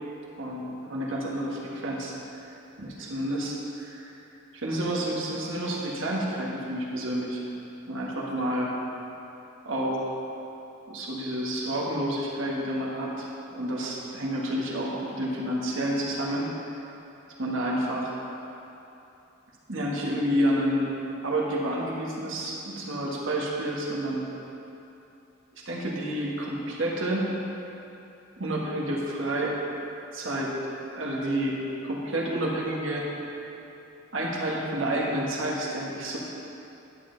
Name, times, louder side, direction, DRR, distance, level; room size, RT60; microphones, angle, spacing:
voice 1, 0.4-2.1 2.8-4.1 4.5-7.4 7.9-8.7 9.6-10.1 10.9-16.5 17.4-18.1 19.7-20.9 21.2-24.3 25.6-27.3 28.4-29.5 30.1-30.5 30.9-31.6 31.8-33.0 34.1-36.2, right 1 dB, 65° right, -4 dB, 1.4 m, -29 dB
11.0 x 7.5 x 3.9 m, 2.9 s
head